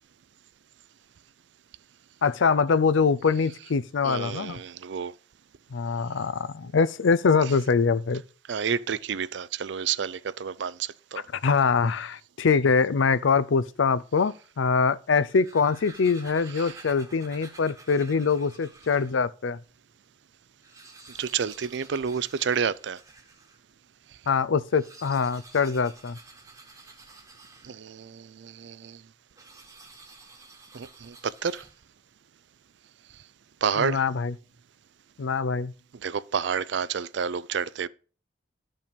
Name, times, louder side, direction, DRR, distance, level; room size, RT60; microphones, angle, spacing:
voice 1, 2.2-4.6 5.7-8.2 11.3-19.6 24.3-26.2 33.8-34.3 35.2-35.7, left 5 dB, 85° left, 0.5 m, -24 dB
voice 2, 4.0-5.1 8.5-11.2 16.6-16.8 21.2-23.0 27.6-29.0 30.7-31.6 33.6-34.0 35.9-37.9, right 6 dB, 70° right, 0.4 m, -30 dB
sound 1, 15.2-19.2 19.8-19.9 20.1-20.2 20.5-23.6 24.6-28.0 29.3-32.0, right 3 dB, 15° right, 1.2 m, -50 dB
12.5 x 5.5 x 5.1 m
head